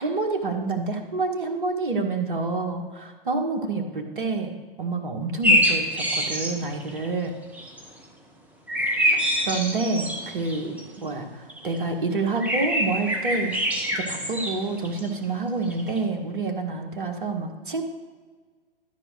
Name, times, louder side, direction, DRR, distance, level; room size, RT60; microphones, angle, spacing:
voice 1, 0.0-7.3 9.5-13.5 13.9-17.8, right 3 dB, 60° right, 3 dB, 1.8 m, -28 dB
sound 1, 5.4-7.1 7.5-7.9 8.7-10.8 11.5-11.8 12.4-15.2 15.7-16.0, equal, 5° right, 1.0 m, -25 dB
13.5 x 5.0 x 6.5 m, 1.5 s
figure-of-eight pair, 115°, 29 cm